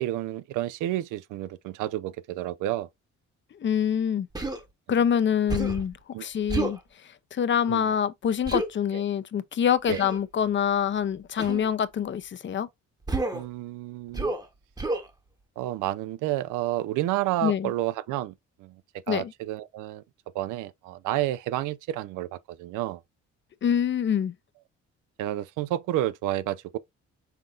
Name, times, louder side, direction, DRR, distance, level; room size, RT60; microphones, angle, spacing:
voice 1, 0.0-2.9 4.9-5.0 6.1-6.3 7.7-7.9 8.9-9.0 9.9-10.1 13.3-14.3 15.6-18.8 19.1-20.0 20.3-23.0 25.2-26.8, right 14 dB, 90° right, 0.5 m, -30 dB
voice 2, 3.6-4.3 4.9-6.8 7.3-12.7 17.4-17.7 19.1-19.3 23.6-24.3, left 8 dB, 40° left, 0.5 m, -25 dB
Human voice, 4.3-4.6 5.5-5.9 6.5-6.8 8.5-8.7 9.9-10.2 11.4-11.7 13.1-13.5 14.1-14.5 14.8-15.1, right 2 dB, 15° right, 0.9 m, -29 dB
5.7 x 3.8 x 2.4 m
cardioid pair, 90°, 30 cm